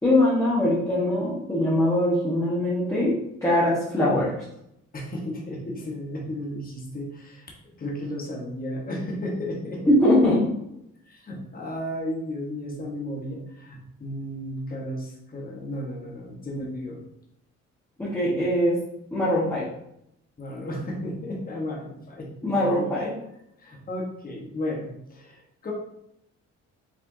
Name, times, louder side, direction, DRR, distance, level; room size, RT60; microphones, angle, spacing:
voice 1, 0.0-3.1 3.4-4.3 9.8-10.4 18.0-18.8 19.1-19.6 22.4-23.1, left 1 dB, 10° left, -10 dB, 1.5 m, -22 dB
voice 2, 4.9-9.8 11.0-17.0 20.4-22.9 23.6-25.7, left 1 dB, 30° left, -1 dB, 1.2 m, -34 dB
5.3 x 3.3 x 2.8 m, 0.77 s
cardioid pair, 90°, 30 cm